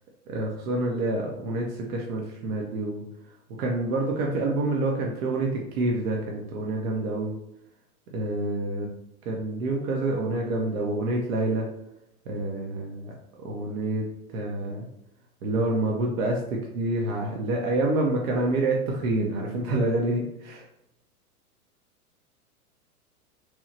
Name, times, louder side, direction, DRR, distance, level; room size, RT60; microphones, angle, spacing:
voice 1, 0.3-3.0 3.6-7.3 8.1-8.9 9.3-11.7 12.3-13.1 13.4-14.0 14.3-14.9 15.4-20.7, right 2 dB, 65° right, -1 dB, 0.6 m, -27 dB
3.0 x 2.0 x 2.5 m, 0.83 s
figure-of-eight pair, 100°, 45 cm